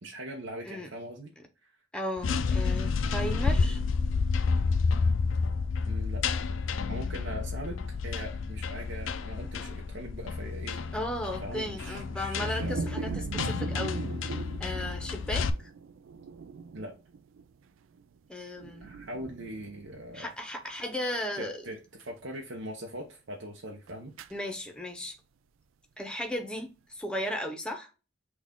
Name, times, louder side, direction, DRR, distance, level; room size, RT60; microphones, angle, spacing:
voice 1, 0.0-1.3 1.6-1.7 5.9-6.2 6.9-10.8 11.4-13.2 16.7-16.9 18.8-20.3 21.4-24.1, right 1 dB, 65° right, 0.9 m, -41 dB
voice 2, 1.9-3.8 10.9-14.0 14.6-15.7 18.3-18.9 20.1-21.6 24.3-25.1 26.0-27.9, left 1 dB, 5° left, 0.8 m, -35 dB
sound 1, 2.2-15.5, left 4 dB, 80° left, 0.5 m, -30 dB
sound 2, 12.6-18.2 18.6-20.4 20.7-20.8 22.0-22.2 23.9-24.4, right 5 dB, 85° right, 0.4 m, -40 dB
6.1 x 2.4 x 3.6 m
head